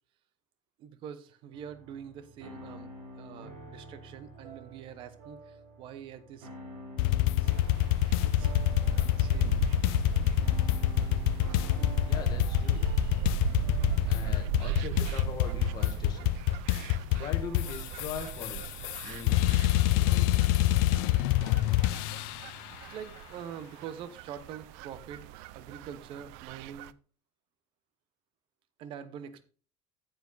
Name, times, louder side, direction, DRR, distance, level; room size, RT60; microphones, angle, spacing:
voice 1, 0.8-2.9 3.2-6.5 7.4-7.6 8.2-8.6 9.0-9.6 22.9-25.3 25.5-26.9 28.8-29.4, right 8 dB, 50° right, 13 dB, 1.1 m, -45 dB
sound 1, 1.5-17.8, right 1 dB, 90° right, 5.4 m, -49 dB
sound 2, 7.0-22.6, left 16 dB, 80° left, 0.5 m, -27 dB
sound 3, 7.4-26.9, right 13 dB, 75° right, 0.5 m, -38 dB
voice 2, 12.1-12.8 14.1-16.3 17.1-19.6 19.9-20.4, left 6 dB, 35° left, 3 dB, 2.1 m, -41 dB
9.4 x 8.0 x 4.0 m, 0.40 s
cardioid pair, 160°, 12 cm